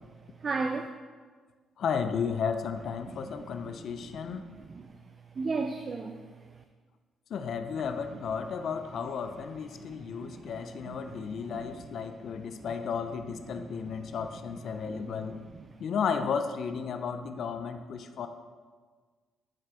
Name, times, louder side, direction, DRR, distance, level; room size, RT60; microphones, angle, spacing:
voice 1, 0.4-0.9 3.0-4.9 5.3-6.6 7.8-8.3 9.7-12.7 13.5-14.4 14.8-15.7, right 4 dB, 45° right, 6 dB, 0.4 m, -39 dB
voice 2, 1.8-4.4 7.3-15.4 15.8-18.3, left 6 dB, 65° left, 8 dB, 0.5 m, -33 dB
8.8 x 4.7 x 3.6 m, 1.5 s
cardioid pair, 90°, 0 cm